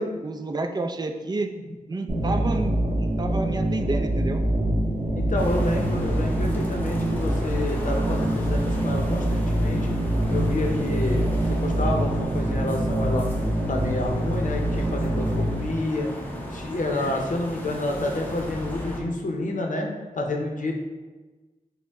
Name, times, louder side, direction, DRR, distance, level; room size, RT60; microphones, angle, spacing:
voice 1, 0.0-1.5 1.9-4.4, right 2 dB, 30° right, 6 dB, 0.3 m, -30 dB
voice 2, 2.1-2.5 5.2-9.9 10.3-11.3 11.6-13.2 13.7-16.1 16.5-19.9 20.1-20.7, left 2 dB, 60° left, 1 dB, 0.6 m, -29 dB
sound 1, 2.1-15.6, right 1 dB, 45° right, 0.7 m, -25 dB
sound 2, 5.4-19.0, equal, 10° left, 0.6 m, -36 dB
5.2 x 2.1 x 3.4 m, 1.3 s
wide cardioid pair, 95°, 15 cm